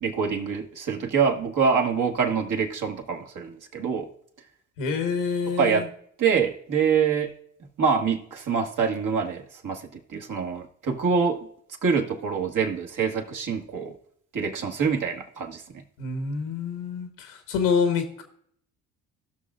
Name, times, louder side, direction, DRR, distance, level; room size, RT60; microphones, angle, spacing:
voice 1, 0.0-4.1 5.6-5.9 6.2-7.3 7.8-9.8 10.1-11.5 11.8-13.9 14.3-15.8, right 6 dB, 55° right, 2 dB, 1.7 m, -25 dB
voice 2, 4.8-5.9 16.0-18.2, left 5 dB, 90° left, 6 dB, 1.4 m, -27 dB
17.0 x 6.1 x 2.5 m, 0.66 s
supercardioid pair, 60°, 37 cm